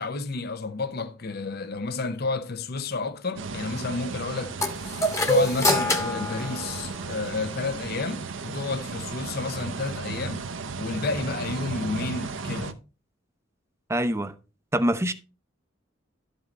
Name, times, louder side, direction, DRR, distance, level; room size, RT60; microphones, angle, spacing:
voice 1, 0.0-4.6 5.3-10.5 10.8-12.8, left 3 dB, 50° left, 0.7 m, -31 dB
sound 1, 3.4-12.7, right 4 dB, 70° right, 0.8 m, -35 dB
sound 2, 4.6-7.3, left 1 dB, 15° left, 1.2 m, -26 dB
voice 2, 13.9-14.3 14.7-15.1, right 1 dB, 15° right, 0.7 m, -24 dB
12.0 x 5.5 x 4.1 m
head